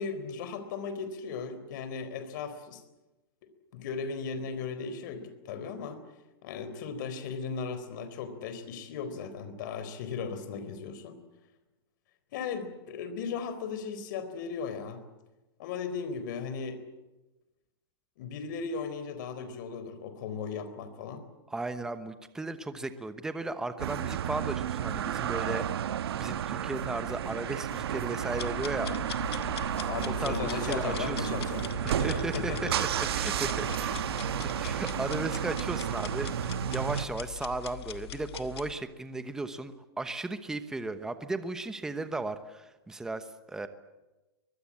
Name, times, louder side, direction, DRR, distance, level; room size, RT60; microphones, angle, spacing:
voice 1, 0.0-2.8 3.4-6.0 6.4-11.2 12.3-15.0 15.6-16.8 18.2-21.3 29.9-31.7 31.9-32.8 33.7-33.8 34.6-34.7, left 5 dB, 50° left, 11 dB, 4.1 m, -37 dB
voice 2, 21.5-25.6 26.2-29.0 30.2-31.4 31.8-32.5 33.0-33.9 34.4-43.7, right 2 dB, 5° right, 10 dB, 1.0 m, -36 dB
sound 1, 23.8-37.1, right 10 dB, 80° right, 1.2 m, -32 dB
sound 2, 28.3-38.7, left 11 dB, 85° left, 1.8 m, -41 dB
24.0 x 21.0 x 8.6 m, 1.1 s
supercardioid pair, 160°, 13 cm